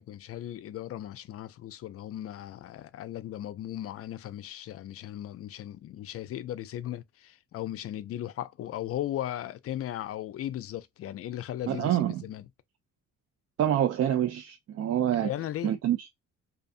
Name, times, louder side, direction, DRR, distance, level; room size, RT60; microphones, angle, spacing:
voice 1, 0.0-12.5 15.2-15.7, left 12 dB, 50° left, 0.4 m, -37 dB
voice 2, 11.7-12.2 13.6-15.3 15.6-16.0, right 11 dB, 55° right, 0.4 m, -26 dB
2.5 x 2.4 x 2.4 m
cardioid pair, 90°, 30 cm